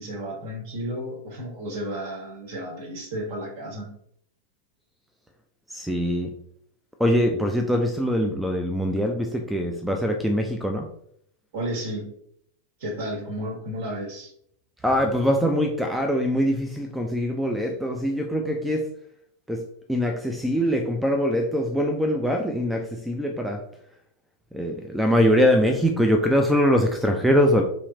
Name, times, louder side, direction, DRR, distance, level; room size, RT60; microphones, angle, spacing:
voice 1, 0.0-3.9 11.5-12.1 12.8-14.3, equal, 50° right, 0 dB, 1.4 m, -32 dB
voice 2, 5.7-6.3 7.0-10.9 14.8-18.9 19.5-23.6 24.5-27.6, equal, 5° right, 4 dB, 0.5 m, -23 dB
3.1 x 3.1 x 3.7 m, 0.67 s
figure-of-eight pair, 90°, 0 cm